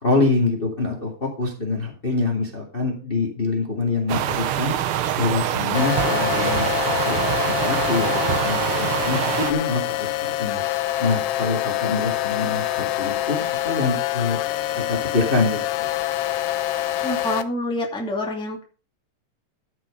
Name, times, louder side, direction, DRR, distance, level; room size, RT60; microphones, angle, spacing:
voice 1, 0.0-4.8 5.2-10.6 11.0-14.4 14.9-15.6, left 3 dB, 20° left, 0 dB, 2.1 m, -25 dB
sound 1, 4.1-9.5, right 10 dB, 75° right, 1.2 m, -24 dB
sound 2, 5.7-17.4, left 14 dB, 75° left, 1.5 m, -25 dB
voice 2, 17.0-18.6, left 1 dB, ahead, 0 dB, 2.1 m, -27 dB
13.5 x 6.2 x 5.2 m, 0.36 s
omnidirectional pair, 3.5 m